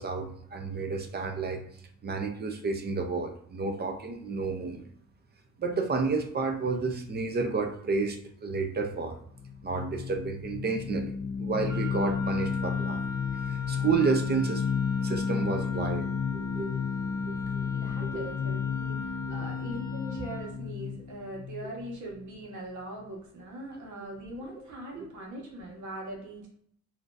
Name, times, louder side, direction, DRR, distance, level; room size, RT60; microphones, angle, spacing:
voice 1, 0.0-1.6 2.0-4.8 5.6-9.2 9.6-13.0 13.5-14.6 15.0-16.8 17.3-17.7 18.0-18.3 19.3-19.4, right 4 dB, 35° right, 5 dB, 0.6 m, -31 dB
sound 1, 9.3-22.4, left 6 dB, 30° left, 0.4 m, -32 dB
Wind instrument woodwind instrument, 11.7-20.5, left 2 dB, 15° left, 1.1 m, -42 dB
voice 2, 17.7-26.5, right 1 dB, 70° right, -1 dB, 1.3 m, -41 dB
3.6 x 2.7 x 2.5 m, 0.64 s
cardioid pair, 90°, 30 cm